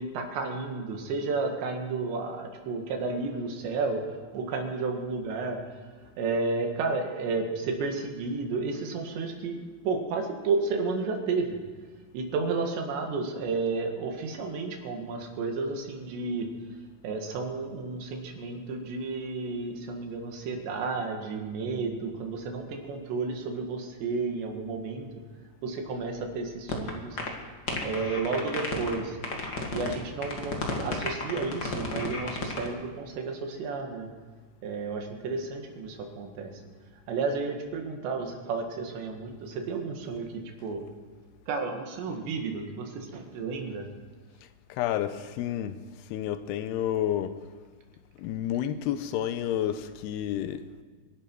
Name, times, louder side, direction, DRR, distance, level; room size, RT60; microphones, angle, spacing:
voice 1, 0.0-4.0 4.3-5.6 6.2-11.6 12.1-16.5 17.0-25.1 25.6-27.2 27.8-29.2 29.7-34.1 34.6-36.5 37.1-40.8 41.5-43.9, right 4 dB, 80° right, 3 dB, 4.0 m, -32 dB
sound 1, 26.7-26.9 27.2-27.3 27.7-29.0 29.2-29.9 30.2-32.7, left 3 dB, 55° left, 1.1 m, -32 dB
voice 2, 44.7-45.8 46.1-47.4 48.2-50.6, left 11 dB, 80° left, 11 dB, 2.6 m, -30 dB
26.0 x 11.5 x 4.6 m, 1.4 s
omnidirectional pair, 5.0 m